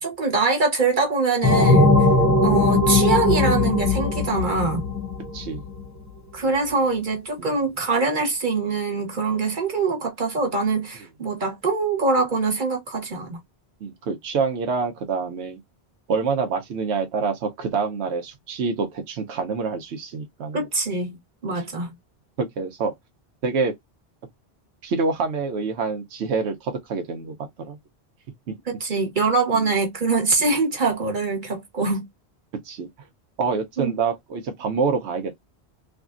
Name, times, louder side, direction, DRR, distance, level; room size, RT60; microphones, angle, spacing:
voice 1, 0.0-1.9 2.4-4.8 6.3-13.4 20.5-21.9 28.7-32.1 33.8-33.9, right 3 dB, 50° right, 1.1 m, -23 dB
sound 1, 1.4-5.8, left 2 dB, 20° left, 0.6 m, -19 dB
voice 2, 5.3-5.6 7.4-7.5 13.8-15.6 16.1-20.6 21.5-21.6 22.4-22.9 23.4-23.7 24.8-27.8 29.5-29.7 30.4-30.5 32.6-32.9 33.4-35.4, right 4 dB, 90° right, 1.0 m, -26 dB
3.4 x 2.3 x 2.4 m
omnidirectional pair, 1.1 m